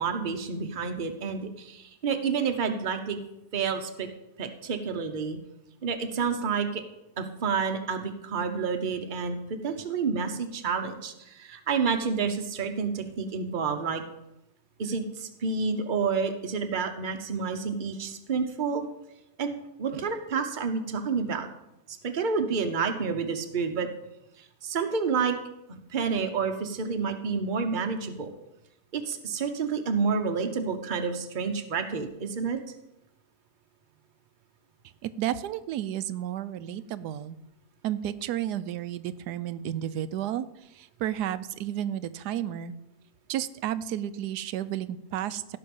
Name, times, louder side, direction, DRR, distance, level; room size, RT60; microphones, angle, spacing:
voice 1, 0.0-3.2 3.5-4.1 4.4-5.4 5.8-6.8 7.2-9.4 9.6-14.0 14.8-18.8 19.4-19.5 19.8-21.5 21.9-23.9 24.6-25.4 25.9-28.3 28.9-32.6, right 5 dB, 35° right, 6 dB, 0.9 m, -29 dB
voice 2, 35.0-37.4 37.8-42.7 43.3-45.6, right 11 dB, 80° right, 15 dB, 1.2 m, -32 dB
16.0 x 5.9 x 5.4 m, 0.88 s
omnidirectional pair, 1.7 m